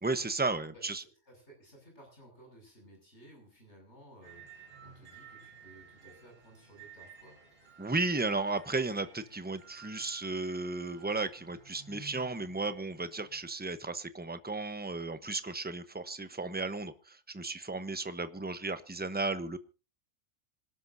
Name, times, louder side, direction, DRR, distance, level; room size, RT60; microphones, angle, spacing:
voice 1, 0.0-1.0 7.8-19.6, right 3 dB, 10° right, 11 dB, 0.9 m, -34 dB
voice 2, 0.7-7.4, right 1 dB, 55° left, 0 dB, 7.2 m, -57 dB
sound 1, 4.2-13.5, right 6 dB, 45° right, 4.2 m, -55 dB
26.0 x 12.0 x 2.7 m, 0.35 s
omnidirectional pair, 1.4 m